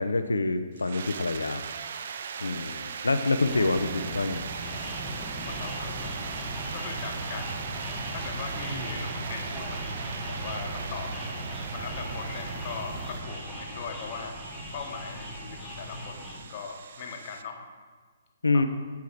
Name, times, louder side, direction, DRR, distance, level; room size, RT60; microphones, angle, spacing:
voice 1, 0.0-1.7 2.4-4.4 18.4-18.7, left 3 dB, 80° left, 9 dB, 0.5 m, -26 dB
sound 1, 0.8-17.4, right 7 dB, 55° right, 0.4 m, -40 dB
sound 2, 3.5-13.2, right 2 dB, 20° right, 1.3 m, -38 dB
sound 3, 4.6-16.4, left 1 dB, 5° left, 1.6 m, -40 dB
voice 2, 5.2-7.5 8.1-11.4 11.7-14.4 14.7-17.6 18.5-18.6, left 6 dB, 40° left, 3 dB, 1.1 m, -40 dB
8.5 x 4.7 x 4.6 m, 1.5 s
figure-of-eight pair, 125°, 0 cm